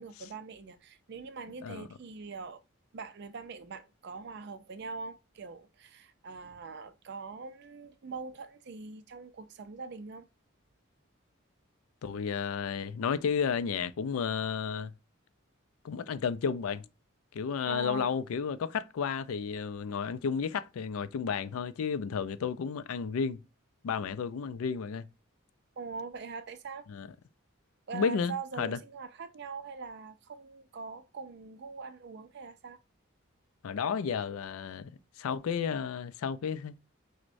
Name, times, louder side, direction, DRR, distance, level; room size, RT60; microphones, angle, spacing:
voice 1, 0.0-2.6 2.9-10.3 17.7-18.1 25.8-26.9 27.9-32.8, right 4 dB, 50° right, 0.4 m, -42 dB
voice 2, 12.0-14.9 15.8-16.9 17.3-23.4 23.8-25.1 26.9-27.1 27.9-28.8 33.6-34.9 35.2-36.8, left 6 dB, 85° left, 0.4 m, -32 dB
6.1 x 2.1 x 2.5 m
head